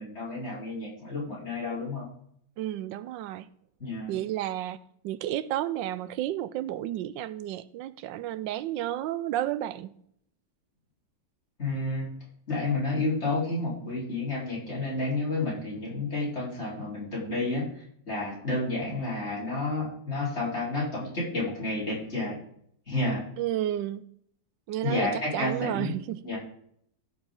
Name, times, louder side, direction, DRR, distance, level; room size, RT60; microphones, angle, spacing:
voice 1, 0.0-2.1 3.8-4.1 11.6-12.1 12.5-22.4 22.9-23.3 24.8-25.9 26.2-26.4, left 2 dB, 35° left, 4.4 m, -30 dB
voice 2, 2.6-3.5 4.1-4.8 5.0-9.9 23.4-24.0 24.7-26.2, right 13 dB, 85° right, 1.3 m, -32 dB
16.0 x 7.1 x 3.8 m
omnidirectional pair, 1.9 m